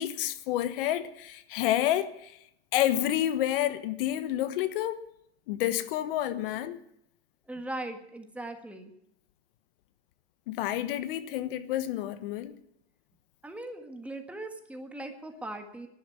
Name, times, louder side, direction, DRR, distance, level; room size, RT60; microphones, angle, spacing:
voice 1, 0.0-2.4 2.7-5.0 5.5-6.8 10.5-12.6, left 12 dB, 55° left, 13 dB, 1.1 m, -29 dB
voice 2, 7.5-8.9 13.4-15.9, right 1 dB, 5° right, 5 dB, 1.7 m, -39 dB
11.5 x 11.5 x 9.5 m, 0.75 s
hypercardioid pair, 135°, 33 cm